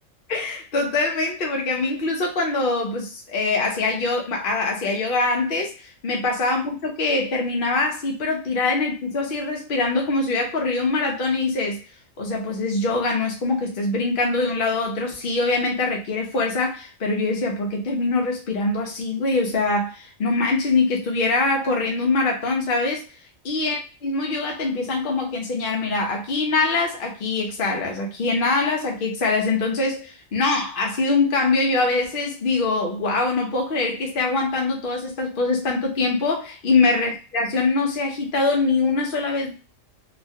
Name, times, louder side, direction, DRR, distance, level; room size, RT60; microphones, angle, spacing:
voice 1, 0.3-11.8 12.2-23.0 23.4-39.5, left 3 dB, 50° left, 0 dB, 0.8 m, -23 dB
3.0 x 2.1 x 2.7 m, 0.33 s
omnidirectional pair, 1.4 m